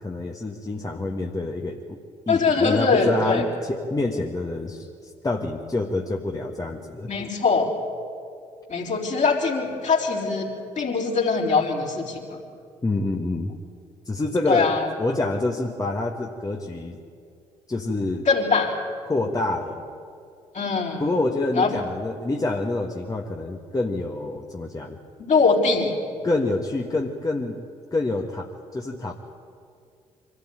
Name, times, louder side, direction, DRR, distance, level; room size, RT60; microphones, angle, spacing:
voice 1, 0.0-2.0 2.3-7.1 12.8-13.5 14.0-17.0 17.7-18.3 19.1-19.8 21.0-25.0 26.2-27.6 27.9-28.5 28.7-29.1, left 2 dB, 20° left, 1 dB, 1.5 m, -27 dB
voice 2, 2.3-3.4 7.1-7.7 8.7-12.4 14.5-14.9 18.3-18.8 20.5-21.0 21.5-21.7 25.2-25.9, left 4 dB, 45° left, -1 dB, 4.1 m, -22 dB
24.0 x 13.5 x 9.0 m, 2.4 s
hypercardioid pair, 50°, 17 cm